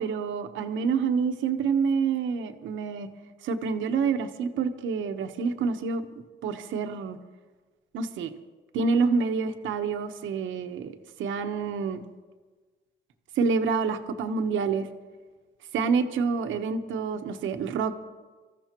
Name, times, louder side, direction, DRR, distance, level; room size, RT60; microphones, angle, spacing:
voice 1, 0.0-3.1 3.4-6.0 6.4-7.2 7.9-8.3 8.7-10.9 11.2-12.0 13.4-14.9 15.7-17.9, right 5 dB, 80° right, 7 dB, 1.1 m, -27 dB
24.5 x 14.0 x 3.0 m, 1.3 s
cardioid pair, 90°, 20 cm